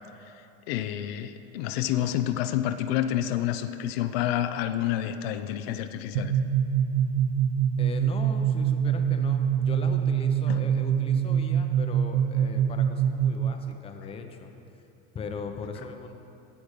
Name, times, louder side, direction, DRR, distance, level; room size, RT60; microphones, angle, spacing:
voice 1, 0.7-6.3 10.5-10.6, left 11 dB, 80° left, 10 dB, 0.6 m, -28 dB
sound 1, 6.2-13.7, right 8 dB, 75° right, 0.6 m, -25 dB
voice 2, 7.8-14.5 15.1-16.1, left 5 dB, 20° left, 5 dB, 0.7 m, -39 dB
14.5 x 5.1 x 6.5 m, 2.8 s
cardioid pair, 150°, 29 cm